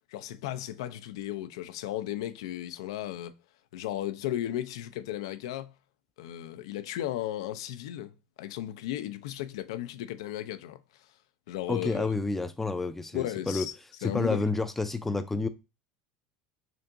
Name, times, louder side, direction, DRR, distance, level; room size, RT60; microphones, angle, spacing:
voice 1, 0.1-3.3 3.7-5.7 6.2-10.8 11.5-12.2 13.1-13.7 14.0-14.4, left 13 dB, 85° left, 0.4 m, -35 dB
voice 2, 11.7-13.7 14.0-15.5, left 3 dB, 10° left, 0.3 m, -29 dB
3.4 x 2.7 x 3.7 m
supercardioid pair, 125°, 3 cm